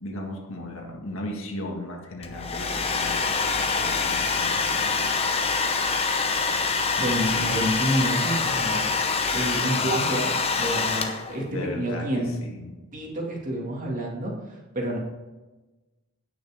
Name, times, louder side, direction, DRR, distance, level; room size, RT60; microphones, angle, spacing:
voice 1, 0.0-5.2 11.5-12.8, left 1 dB, 60° left, 1 dB, 1.8 m, -37 dB
Domestic sounds home sounds, 2.2-11.4, left 4 dB, 25° left, 0.8 m, -25 dB
voice 2, 7.0-8.9 9.3-12.4 12.9-14.4 14.7-15.0, right 1 dB, 35° right, -1 dB, 2.3 m, -28 dB
17.5 x 6.2 x 3.6 m, 1.1 s
head